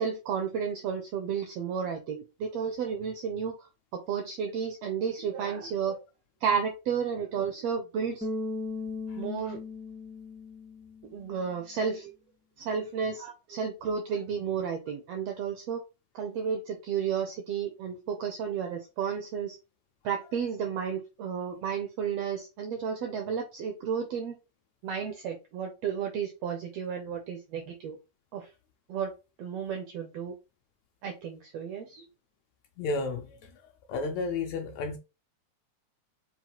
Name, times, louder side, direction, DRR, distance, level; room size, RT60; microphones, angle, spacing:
voice 1, 0.0-6.0 6.4-8.3 9.2-9.6 11.1-12.1 12.6-15.8 16.1-19.6 20.0-24.4 24.8-28.0 28.3-28.5 28.9-29.1 29.4-30.3 31.0-32.0, right 7 dB, 80° right, 1.4 m, -32 dB
Bass guitar, 8.2-11.3, left 3 dB, 5° right, 0.3 m, -37 dB
voice 2, 32.8-33.6 33.9-35.0, left 3 dB, 80° left, 1.6 m, -32 dB
5.5 x 2.4 x 2.8 m
omnidirectional pair, 3.5 m